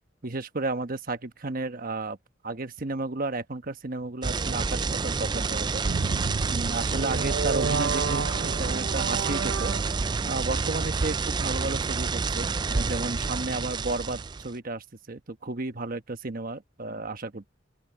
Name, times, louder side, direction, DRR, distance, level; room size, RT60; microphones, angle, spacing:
voice 1, 0.2-2.2 2.4-5.8 6.5-9.7 10.2-17.5, right 3 dB, 50° right, 1.1 m, -33 dB
sound 1, 4.2-14.5, right 4 dB, 25° right, 0.4 m, -29 dB
sound 2, 5.8-10.3, right 4 dB, 65° right, 0.7 m, -31 dB
open air
head